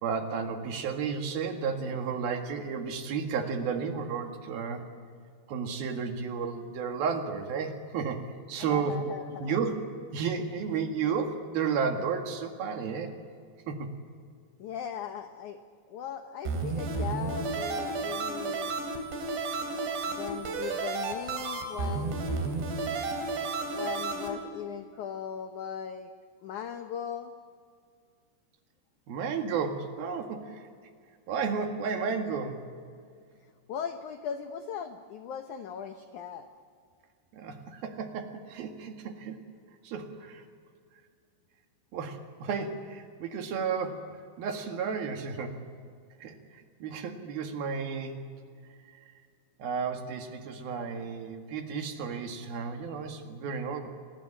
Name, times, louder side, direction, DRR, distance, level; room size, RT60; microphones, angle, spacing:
voice 1, 0.0-4.9 5.5-9.1 9.4-9.8 10.1-13.1 13.7-13.9 29.1-30.7 31.3-32.6 37.3-39.4 39.8-40.4 41.9-45.6 46.2-46.4 46.8-48.2 49.6-53.9, right 6 dB, 65° right, 5 dB, 3.5 m, -32 dB
voice 2, 8.6-9.6 14.6-15.6 15.9-18.7 20.0-22.2 23.7-26.1 26.4-27.3 33.7-36.5, left 8 dB, 85° left, 7 dB, 1.7 m, -38 dB
sound 1, 16.4-24.3, right 3 dB, 80° right, 5.4 m, -32 dB
26.0 x 19.5 x 10.0 m, 2.2 s
omnidirectional pair, 5.0 m